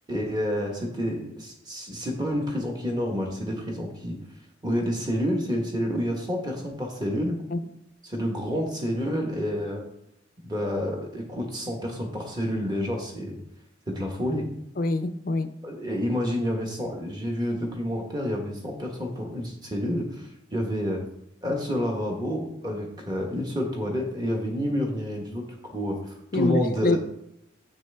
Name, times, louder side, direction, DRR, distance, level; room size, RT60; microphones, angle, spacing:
voice 1, 0.1-4.2 4.6-7.4 8.0-9.9 10.4-13.4 13.9-14.5 15.6-21.0 21.4-25.5 25.7-27.0, equal, 20° right, 1.3 m, -29 dB
voice 2, 14.8-15.5 26.3-27.0, left 2 dB, 45° left, 0.4 m, -25 dB
7.4 x 6.1 x 3.4 m
head